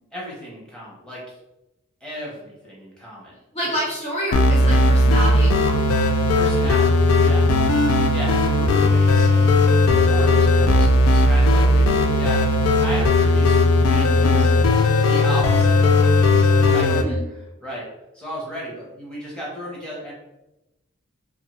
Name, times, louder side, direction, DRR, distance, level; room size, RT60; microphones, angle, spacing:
voice 1, 0.1-1.3 2.0-3.4 3.6-3.7 6.3-7.5 8.0-12.4 12.8-17.9 18.1-20.1, equal, 5° left, -6 dB, 0.9 m, -35 dB
voice 2, 3.5-5.9 7.7-7.8 16.9-17.2, equal, 30° left, -5 dB, 0.5 m, -28 dB
sound 1, 4.3-17.0, left 2 dB, 85° left, 0.3 m, -17 dB
2.8 x 2.6 x 3.0 m, 0.95 s
head